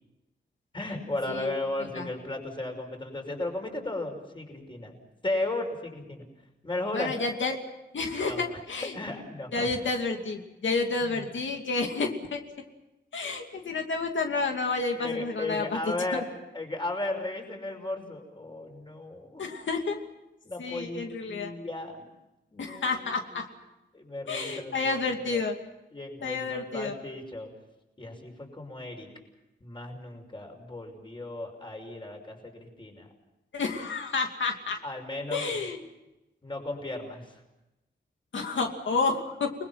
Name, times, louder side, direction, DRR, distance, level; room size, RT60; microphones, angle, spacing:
voice 1, 0.7-5.0 5.2-6.2 6.6-7.1 8.2-8.6 8.9-9.7 11.0-11.3 14.9-16.2 16.5-19.4 20.4-22.0 22.5-23.1 23.9-25.0 25.3-25.4 25.9-27.5 28.0-29.1 29.6-33.1 34.8-35.7 36.4-37.4, left 2 dB, 25° left, 3 dB, 5.8 m, -35 dB
voice 2, 6.9-7.6 7.9-9.0 9.5-12.4 13.1-15.8 19.4-20.0 20.6-21.5 22.6-23.5 24.3-25.6 26.2-27.0 33.5-34.8 35.3-35.8 38.3-39.5, left 4 dB, 80° left, 3 dB, 2.7 m, -30 dB
30.0 x 21.0 x 5.9 m, 0.96 s
wide cardioid pair, 105°, 19 cm